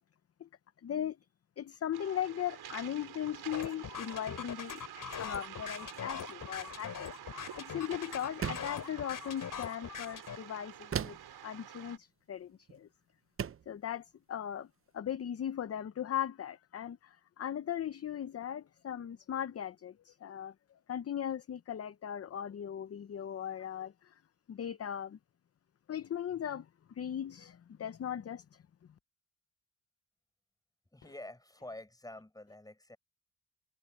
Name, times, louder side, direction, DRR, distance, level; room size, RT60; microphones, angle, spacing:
voice 1, 0.8-1.2 1.6-4.8 5.2-11.2 11.4-12.9 13.7-14.7 14.9-20.5 20.9-24.2 24.5-25.2 25.9-26.7 27.0-28.6, left 10 dB, 40° left, 0.7 m, -38 dB
Waves surf, 1.9-12.0, right 10 dB, 80° right, 4.5 m, -48 dB
sound 1, 3.5-10.4, left 8 dB, 60° left, 2.7 m, -42 dB
sound 2, 8.4-8.8 10.9-11.4 12.7-12.8 13.4-13.7, right 8 dB, 35° right, 0.6 m, -36 dB
voice 2, 30.9-33.0, left 1 dB, 10° left, 6.8 m, -48 dB
cardioid pair, 115°, 37 cm